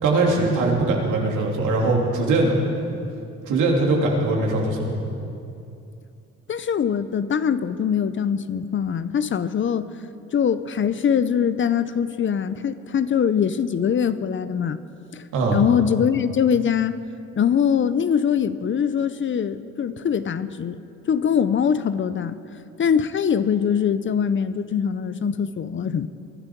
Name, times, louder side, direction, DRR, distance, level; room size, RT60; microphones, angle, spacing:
voice 1, 0.0-2.6 3.5-4.9 15.3-15.6, right 2 dB, 80° right, -1 dB, 2.9 m, -21 dB
voice 2, 6.5-9.9 10.3-14.8 15.1-16.9 17.4-20.8 21.1-22.4 22.8-26.1, left 7 dB, 40° left, 14 dB, 0.6 m, -22 dB
23.0 x 12.5 x 4.6 m, 2.6 s
cardioid pair, 90°, 30 cm